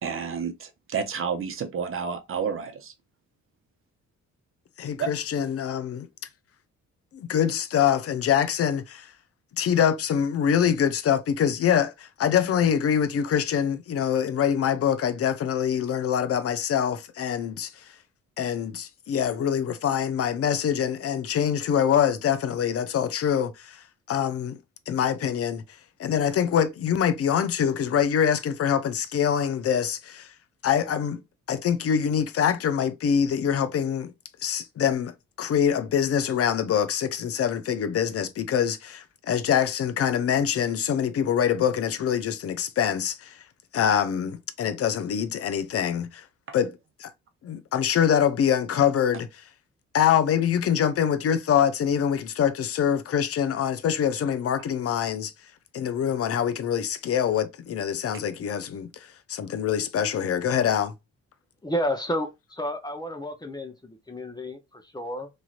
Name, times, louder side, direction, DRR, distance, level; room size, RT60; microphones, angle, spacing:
voice 1, 0.0-2.9 5.0-5.1 46.5-46.6, right 6 dB, 45° right, 0.8 m, -30 dB
voice 2, 4.8-6.1 7.1-9.1 9.6-17.7 18.4-24.6 24.9-25.6 26.0-30.3 30.6-31.2 31.5-34.1 34.4-43.4 43.7-46.2 46.5-47.1 47.4-49.3 49.9-55.3 55.7-60.9, left 8 dB, 50° left, 0.6 m, -24 dB
voice 3, 61.6-65.3, equal, 15° left, 0.7 m, -31 dB
3.2 x 2.8 x 2.4 m
cardioid pair, 90°, 30 cm